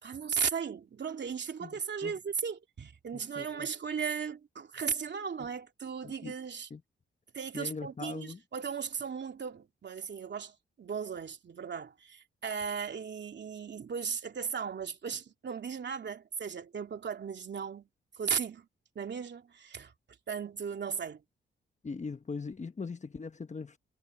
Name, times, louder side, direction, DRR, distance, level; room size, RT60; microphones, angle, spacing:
voice 1, 0.0-6.7 7.3-17.9 18.2-18.7 18.9-19.9 20.3-21.2, right 6 dB, 60° right, 3.0 m, -36 dB
voice 2, 1.6-2.1 3.1-3.7 5.4-5.5 6.0-6.3 6.7-6.8 7.5-8.4 21.8-23.8, left 4 dB, 35° left, 1.2 m, -41 dB
cardioid pair, 65°, 21 cm